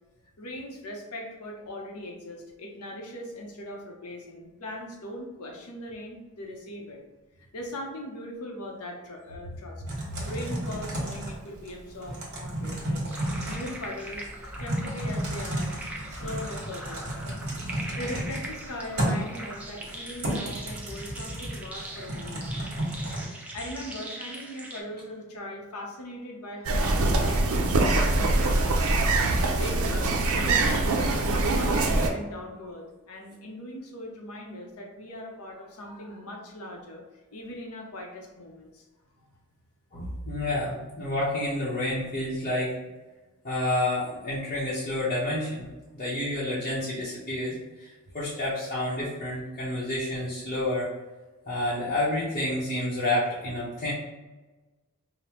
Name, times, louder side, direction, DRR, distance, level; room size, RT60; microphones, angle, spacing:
voice 1, 0.4-7.0 7.5-9.8 10.3-13.0 13.5-14.3 14.6-15.7 16.1-17.1 18.0-22.5 22.8-23.0 23.5-28.9 29.5-38.8 39.2-39.3, left 1 dB, 80° left, 1 dB, 0.8 m, -40 dB
Typing, 9.9-23.3, right 1 dB, 50° right, 1.2 m, -33 dB
sound 1, 13.1-24.8, right 1 dB, 5° right, 0.5 m, -42 dB
sound 2, 26.6-32.1, right 2 dB, 70° right, 0.5 m, -23 dB
voice 2, 39.9-42.7 43.4-45.7 45.9-47.9 48.1-50.9 51.5-53.9, left 1 dB, 35° left, -10 dB, 0.9 m, -29 dB
4.9 x 2.1 x 3.0 m, 1.2 s
head